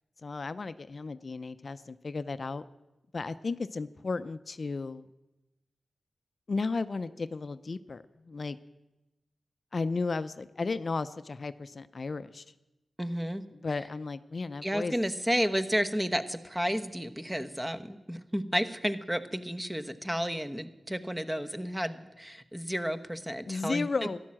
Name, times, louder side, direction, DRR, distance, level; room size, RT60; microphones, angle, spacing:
voice 1, 0.2-2.6 3.1-5.1 6.5-8.6 9.7-12.4 13.5-14.9 23.5-24.2, left 4 dB, 55° left, 13 dB, 0.5 m, -34 dB
voice 2, 13.0-13.4 14.6-23.9, equal, 10° right, 9 dB, 1.0 m, -32 dB
13.5 x 10.5 x 7.6 m, 1.0 s
cardioid pair, 55°, 0 cm